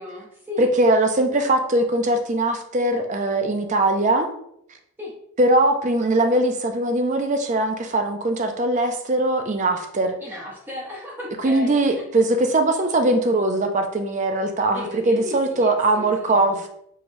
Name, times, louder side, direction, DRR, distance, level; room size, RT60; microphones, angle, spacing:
voice 1, 0.0-0.7 5.0-5.1 10.2-11.8 14.7-16.6, left 2 dB, 10° right, -4 dB, 0.8 m, -35 dB
voice 2, 0.6-4.3 5.4-10.2 11.4-16.7, right 2 dB, 35° right, 6 dB, 0.4 m, -21 dB
4.7 x 3.0 x 2.6 m, 0.73 s
head